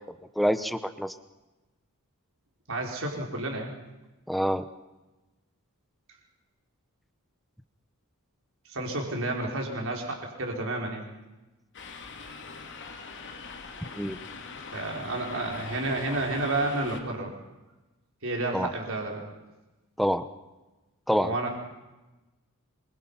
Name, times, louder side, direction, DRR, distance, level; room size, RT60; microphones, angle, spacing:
voice 1, 0.4-1.1 4.3-4.6 14.0-14.2 18.5-18.7 20.0-20.3 21.1-21.3, equal, ahead, 11 dB, 1.0 m, -26 dB
voice 2, 2.7-3.7 8.7-11.1 14.7-17.4 18.2-19.2 21.1-21.6, right 2 dB, 65° right, 1 dB, 5.2 m, -31 dB
sound 1, 11.7-17.0, left 4 dB, 55° left, 3.3 m, -42 dB
26.5 x 24.0 x 5.9 m, 1.1 s
head